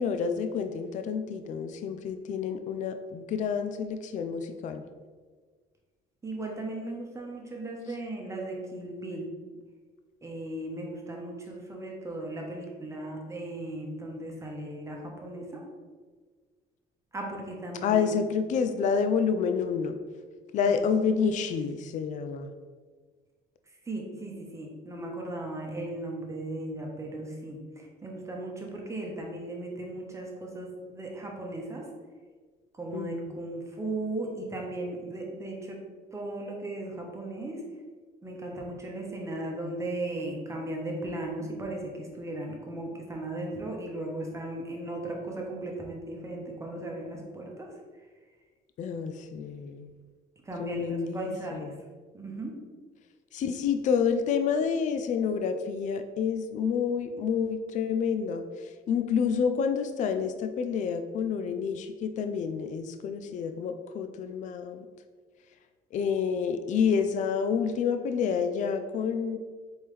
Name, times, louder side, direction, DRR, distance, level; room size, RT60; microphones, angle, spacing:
voice 1, 0.0-4.8 17.8-20.0 20.5-22.5 32.9-33.3 48.8-49.9 50.6-51.7 53.3-58.4 58.9-64.9 65.9-69.4, left 6 dB, 45° left, 8 dB, 0.4 m, -28 dB
voice 2, 6.2-9.3 10.2-15.6 17.1-18.2 20.7-20.9 23.7-31.9 32.7-35.8 36.1-37.6 38.2-47.7 50.4-51.7 52.1-52.5, right 2 dB, 15° right, -1 dB, 1.0 m, -37 dB
4.4 x 3.6 x 3.2 m, 1.5 s
cardioid pair, 110°, 17 cm